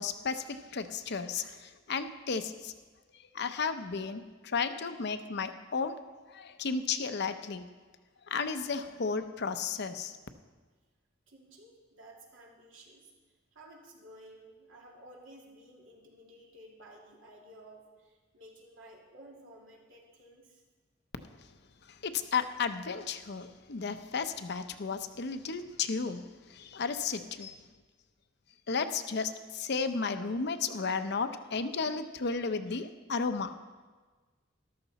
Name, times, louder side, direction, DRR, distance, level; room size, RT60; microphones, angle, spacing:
voice 1, 0.0-2.7 3.1-6.0 6.3-7.6 8.3-10.2 21.9-27.6 28.7-33.5, left 5 dB, 60° left, 9 dB, 0.7 m, -33 dB
voice 2, 11.3-13.1 13.5-20.6, right 1 dB, 85° right, -2 dB, 2.7 m, -54 dB
13.5 x 12.5 x 4.1 m, 1.4 s
head